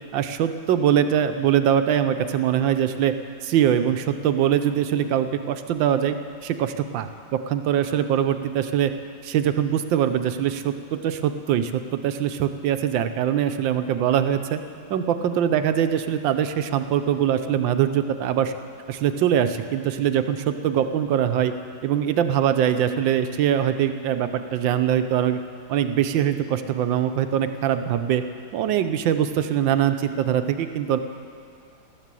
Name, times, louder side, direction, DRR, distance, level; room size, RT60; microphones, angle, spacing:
voice 1, 0.1-3.1 3.4-6.2 6.4-8.9 9.2-14.6 14.9-18.5 18.9-21.5 21.8-25.4 25.7-28.2 28.5-31.0, right 9 dB, 75° right, 9 dB, 1.4 m, -22 dB
13.5 x 13.0 x 7.5 m, 2.5 s
omnidirectional pair, 2.1 m